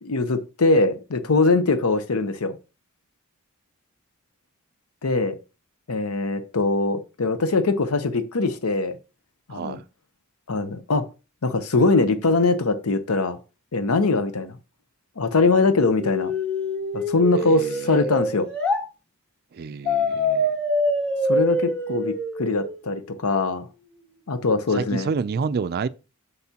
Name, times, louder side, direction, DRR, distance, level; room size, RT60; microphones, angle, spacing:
voice 1, 0.0-2.6 5.0-5.4 5.9-9.0 9.5-9.8 10.5-11.0 11.4-13.4 13.7-14.6 15.2-16.3 16.9-18.5 21.3-22.1 22.4-23.7 24.3-25.1, left 3 dB, 90° left, 0.7 m, -22 dB
voice 2, 9.5-9.8 17.4-18.1 19.6-20.5 24.7-25.9, right 5 dB, 45° right, 0.4 m, -29 dB
sound 1, 16.0-18.8 19.8-22.9, left 1 dB, 5° left, 1.5 m, -25 dB
8.1 x 7.0 x 2.8 m
head